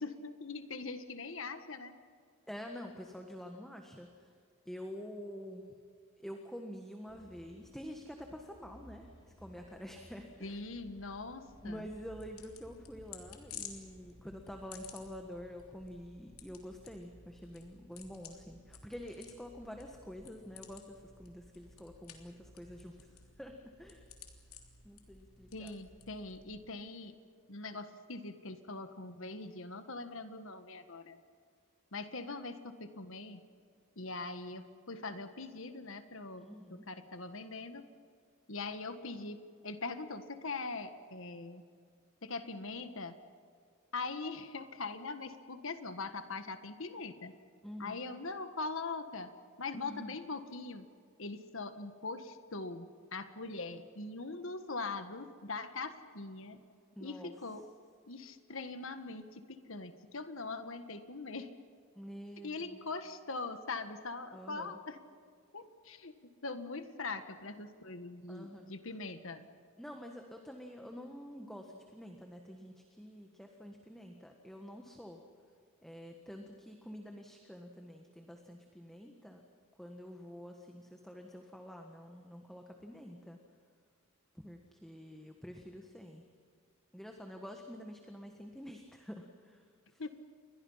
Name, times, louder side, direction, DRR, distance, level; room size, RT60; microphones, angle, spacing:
voice 1, 0.0-1.9 10.4-11.9 25.5-27.2 27.5-31.2 31.9-33.4 34.0-37.8 38.5-41.6 42.2-43.2 43.9-47.3 47.8-49.3 49.6-50.9 51.2-56.6 57.0-57.6 58.1-61.5 62.4-65.0 65.5-69.5 90.0-90.1, left 3 dB, 60° left, 9 dB, 1.5 m, -42 dB
voice 2, 2.5-4.3 4.6-5.7 6.2-10.6 11.6-24.1 24.8-25.7 36.4-36.9 47.6-48.0 49.7-50.2 56.9-57.3 61.9-62.9 64.3-64.8 68.3-68.7 69.8-75.2 75.8-79.4 79.8-83.4 84.3-86.2 86.9-90.0, equal, ahead, 2 dB, 1.5 m, -48 dB
sound 1, 7.1-15.3, equal, 20° left, 2.3 m, -60 dB
sound 2, 11.5-26.7, left 6 dB, 85° left, 3.3 m, -54 dB
29.5 x 23.0 x 5.7 m, 2.2 s
head